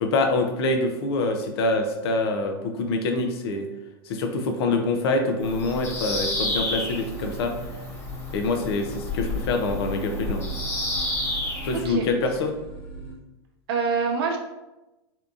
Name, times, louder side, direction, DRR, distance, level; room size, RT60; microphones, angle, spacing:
voice 1, 0.0-3.7 4.1-7.5 8.3-10.5 11.6-12.5, left 2 dB, 70° left, 4 dB, 0.5 m, -25 dB
Bird vocalization bird call bird song, 5.4-11.8, left 2 dB, 20° left, 0.8 m, -31 dB
sound 1, 6.9-13.2, right 3 dB, 50° left, 0.9 m, -38 dB
voice 2, 11.7-12.1 13.7-14.4, right 5 dB, 65° right, 3 dB, 0.5 m, -25 dB
2.8 x 2.3 x 2.5 m, 0.99 s
hypercardioid pair, 115°, 14 cm